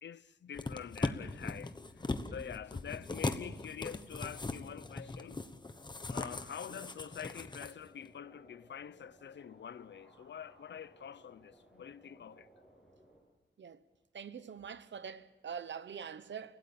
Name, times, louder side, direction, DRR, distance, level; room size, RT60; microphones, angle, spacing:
voice 1, 0.0-2.1 2.3-5.5 6.1-12.5, left 8 dB, 75° left, 0.6 m, -46 dB
sound 1, 0.5-7.7 8.1-8.2, left 3 dB, 25° left, 1.1 m, -39 dB
sound 2, 6.7-13.2, right 1 dB, 5° right, 7.3 m, -62 dB
voice 2, 14.1-16.6, right 7 dB, 80° right, 1.1 m, -44 dB
29.5 x 17.0 x 7.3 m
wide cardioid pair, 180°, 19 cm